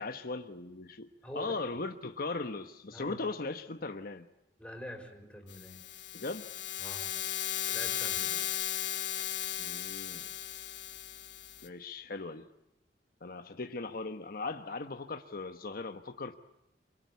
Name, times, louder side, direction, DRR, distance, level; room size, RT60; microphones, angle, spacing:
voice 1, 0.0-4.2 6.1-6.5 8.2-8.4 9.6-10.3 11.6-12.5 13.2-16.4, left 3 dB, 55° left, 7 dB, 1.1 m, -38 dB
voice 2, 1.2-1.6 2.9-3.2 4.6-5.8 6.8-7.2 7.7-8.2, left 1 dB, 5° left, 3 dB, 5.2 m, -45 dB
sound 1, 5.5-11.7, left 12 dB, 80° left, 2.9 m, -36 dB
28.5 x 22.0 x 8.3 m, 0.89 s
head